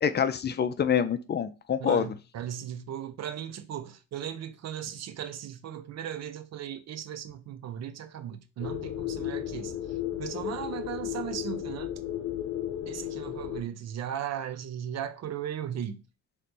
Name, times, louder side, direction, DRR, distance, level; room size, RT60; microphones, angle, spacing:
voice 1, 0.0-2.1, left 8 dB, 35° left, 0.5 m, -26 dB
voice 2, 1.8-9.7 10.2-11.9 12.9-16.0, right 9 dB, 60° right, 0.6 m, -37 dB
sound 1, 8.6-13.6, left 12 dB, 70° left, 0.7 m, -34 dB
3.2 x 3.1 x 4.2 m
cardioid pair, 90°, 30 cm